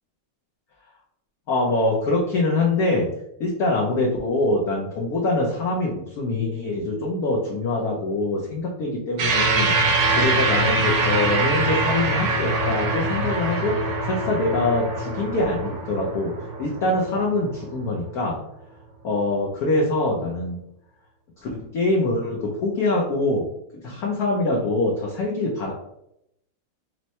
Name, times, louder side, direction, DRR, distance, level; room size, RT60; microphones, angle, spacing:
voice 1, 1.5-3.1 3.4-9.7 10.1-16.3 16.6-18.4 19.0-20.6 21.4-23.5 23.8-25.7, left 2 dB, 65° left, -2 dB, 0.9 m, -24 dB
sound 1, 9.2-17.9, right 2 dB, 75° right, 1.6 m, -24 dB
4.5 x 2.1 x 4.1 m, 0.78 s
omnidirectional pair, 2.3 m